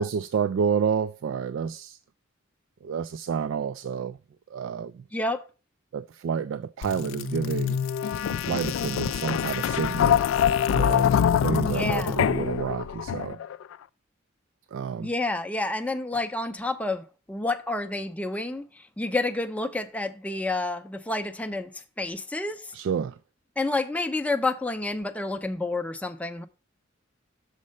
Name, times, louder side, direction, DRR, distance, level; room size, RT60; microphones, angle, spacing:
voice 1, 0.0-2.0 2.8-4.2 4.5-5.0 5.9-7.8 8.4-10.2 10.7-11.1 11.4-13.4 14.7-15.1 22.7-23.2, right 6 dB, 65° right, 0.3 m, -29 dB
voice 2, 5.1-5.4 11.7-12.3 15.0-22.7 23.6-26.5, left 2 dB, 5° left, 0.5 m, -29 dB
sound 1, 6.8-13.6, left 8 dB, 75° left, 0.3 m, -25 dB
6.6 x 4.2 x 6.3 m
head